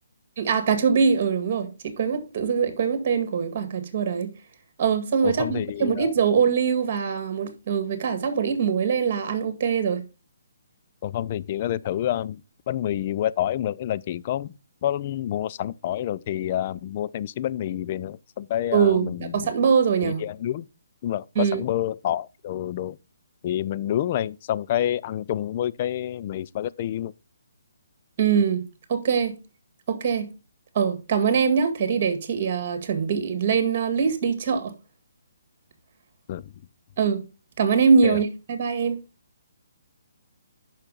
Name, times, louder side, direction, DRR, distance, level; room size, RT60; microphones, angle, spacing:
voice 1, 0.4-4.3 4.8-10.0 18.7-20.2 21.4-21.6 28.2-28.6 28.9-29.4 29.9-30.3 30.7-34.7 37.0-37.2 37.6-39.0, right 6 dB, 40° right, 1.9 m, -23 dB
voice 2, 5.2-6.1 11.0-12.4 12.7-14.5 14.8-19.5 20.0-20.7 21.0-23.0 23.4-27.1 36.3-36.5 38.0-38.2, left 11 dB, 40° left, 0.4 m, -28 dB
6.6 x 5.9 x 5.4 m
figure-of-eight pair, 140°, 0 cm